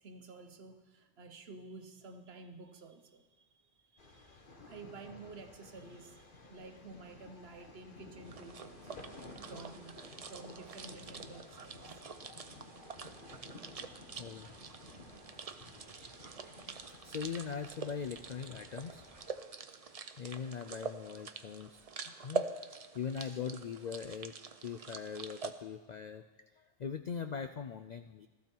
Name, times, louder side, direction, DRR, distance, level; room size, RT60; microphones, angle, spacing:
voice 1, 0.0-3.5 3.8-9.0 9.4-10.0 10.3-12.0, right 3 dB, 60° right, 7 dB, 1.1 m, -52 dB
sound 1, 4.0-19.3, left 2 dB, 45° left, 1.4 m, -54 dB
sound 2, 8.2-25.5, right 5 dB, 40° right, 0.6 m, -45 dB
voice 2, 14.2-14.5 17.0-19.1 20.2-21.8 22.1-22.5 22.9-24.3 24.6-26.2 26.6-28.3, left 6 dB, 60° left, 9 dB, 0.4 m, -41 dB
15.5 x 14.0 x 4.5 m, 1.2 s
omnidirectional pair, 1.3 m